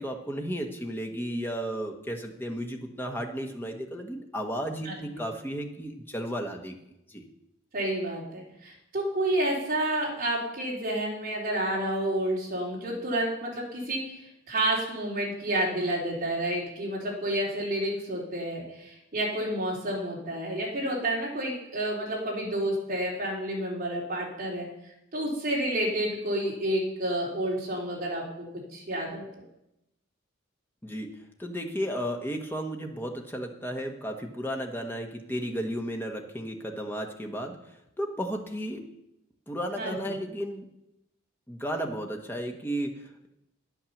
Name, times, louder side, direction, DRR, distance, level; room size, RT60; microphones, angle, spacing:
voice 1, 0.0-6.7 7.1-7.3 30.8-31.1 31.4-37.6 38.0-38.8 39.5-40.6 41.5-43.3, equal, 10° left, 2 dB, 1.3 m, -34 dB
voice 2, 7.7-24.7 25.1-29.2 39.8-40.0, right 1 dB, 40° right, -4 dB, 4.1 m, -30 dB
10.5 x 9.0 x 7.2 m, 0.85 s
head